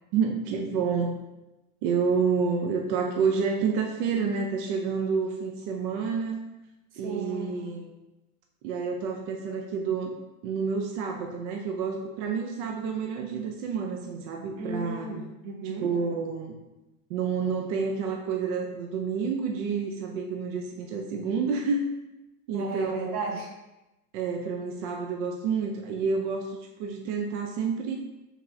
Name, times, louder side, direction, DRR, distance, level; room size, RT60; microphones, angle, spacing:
voice 1, 0.1-1.2 1.8-6.4 7.0-7.9 8.6-15.1 15.8-16.5 17.1-21.9 22.5-23.1 24.1-28.0, right 5 dB, 55° right, 2 dB, 0.5 m, -29 dB
voice 2, 7.0-7.5 14.6-15.9 22.5-23.5, right 3 dB, 85° right, 1 dB, 1.1 m, -34 dB
4.3 x 3.4 x 2.6 m, 1.0 s
supercardioid pair, 155°, 43 cm